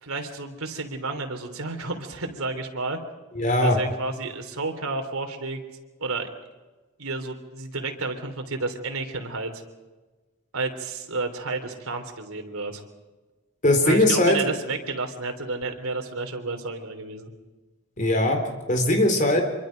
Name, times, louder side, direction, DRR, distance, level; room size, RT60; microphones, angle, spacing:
voice 1, 0.0-3.0 3.6-5.6 6.0-6.3 7.0-9.6 10.5-12.8 13.8-17.3, right 3 dB, 90° right, 5 dB, 3.3 m, -31 dB
voice 2, 3.3-3.8 13.6-14.4 18.0-18.4 18.7-19.4, left 1 dB, 35° left, 4 dB, 4.1 m, -20 dB
26.0 x 23.5 x 5.2 m, 1.2 s
head